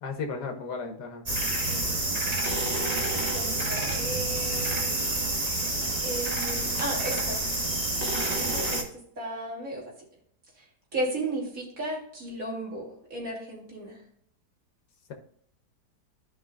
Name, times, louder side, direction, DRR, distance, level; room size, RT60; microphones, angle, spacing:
voice 1, 0.0-1.2, left 4 dB, 85° left, 4 dB, 1.8 m, -34 dB
sound 1, 1.3-8.8, right 2 dB, 25° right, 1.4 m, -28 dB
voice 2, 1.5-1.9 3.3-5.0 6.0-7.4 8.3-8.8 9.2-9.8 10.6-10.7 10.9-14.0, right 1 dB, 55° right, -3 dB, 3.1 m, -34 dB
14.5 x 5.4 x 2.5 m, 0.64 s
omnidirectional pair, 1.8 m